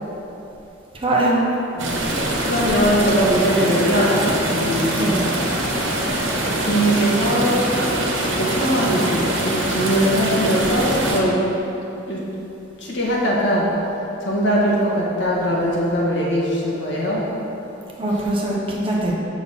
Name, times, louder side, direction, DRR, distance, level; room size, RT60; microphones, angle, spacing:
voice 1, 1.0-1.4 4.9-5.3 18.0-19.1, right 1 dB, 30° right, -4 dB, 1.1 m, -21 dB
voice 2, 1.7-5.1 6.6-8.0 8.4-11.3 12.1-12.2 12.8-13.7 14.2-17.2, equal, 65° left, -5 dB, 1.5 m, -21 dB
sound 1, 1.8-11.2, right 1 dB, 80° right, 1.3 m, -23 dB
7.5 x 5.9 x 4.2 m, 2.9 s
head